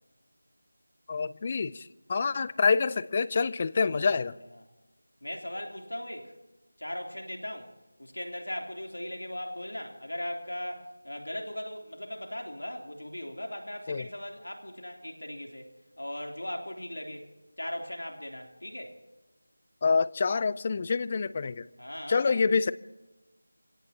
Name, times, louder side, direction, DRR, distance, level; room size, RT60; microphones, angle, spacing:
voice 1, 1.1-4.4 13.9-14.1 19.8-21.7 22.1-22.7, left 5 dB, 30° left, 0.5 m, -27 dB
voice 2, 3.9-4.2 5.2-6.3 6.8-7.7 8.0-17.3 17.6-19.0 21.8-22.4, left 1 dB, 90° left, 3.3 m, -38 dB
26.5 x 17.0 x 2.9 m
figure-of-eight pair, 170°, 0 cm